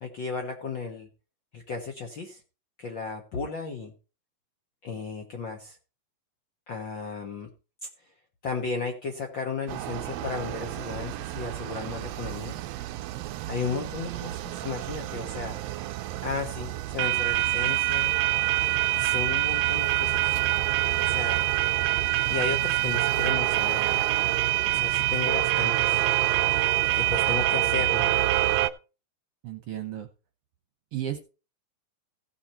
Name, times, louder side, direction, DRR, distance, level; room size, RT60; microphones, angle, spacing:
voice 1, 0.0-1.1 1.5-2.4 2.8-3.9 4.8-5.8 6.7-7.5 8.4-12.6 13.5-15.6 16.2-18.1 18.9-20.4 21.0-21.4 22.3-24.1 24.7-26.0 26.9-28.1, left 4 dB, 60° left, 3 dB, 1.2 m, -34 dB
sound 1, 9.7-28.7, right 16 dB, 85° right, 1.4 m, -26 dB
voice 2, 29.4-30.1 30.9-31.2, right 11 dB, 65° right, 8 dB, 1.6 m, -33 dB
16.0 x 5.6 x 4.2 m, 0.32 s
omnidirectional pair, 3.6 m